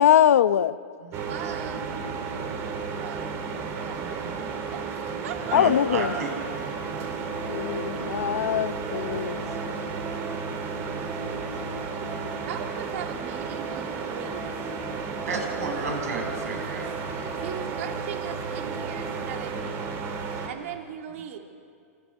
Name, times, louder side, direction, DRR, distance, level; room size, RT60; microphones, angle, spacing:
voice 1, 0.0-0.8 5.5-6.1 7.5-9.8 17.2-17.4, left 10 dB, 75° left, 0.9 m, -22 dB
sound 1, 1.1-20.5, right 5 dB, 35° right, 3.1 m, -33 dB
voice 2, 1.2-2.0 3.0-5.8 12.5-14.7 17.4-20.0 20.4-21.4, right 9 dB, 60° right, 2.8 m, -39 dB
voice 3, 3.5-4.9 5.5-6.7 14.8-17.4, right 3 dB, 80° right, 7.6 m, -34 dB
sound 2, 5.3-19.3, right 3 dB, 15° right, 2.7 m, -43 dB
28.0 x 25.5 x 7.2 m
hypercardioid pair, 140°, 8 cm